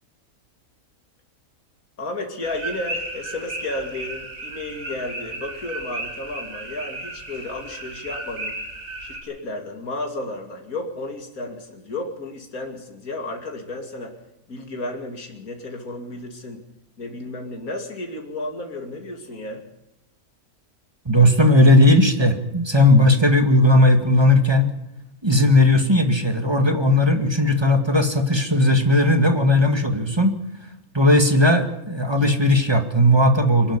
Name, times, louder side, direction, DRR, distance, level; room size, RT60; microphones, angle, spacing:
voice 1, 2.0-8.6 9.0-14.1 14.5-16.6 17.0-19.6, left 2 dB, 75° left, 3 dB, 3.1 m, -33 dB
sound 1, 2.4-9.2, right 2 dB, 65° right, 4.7 m, -34 dB
voice 2, 21.1-24.7 25.2-30.3 30.9-33.8, left 1 dB, 20° right, 6 dB, 2.0 m, -17 dB
24.0 x 11.5 x 10.0 m, 0.85 s
omnidirectional pair, 1.5 m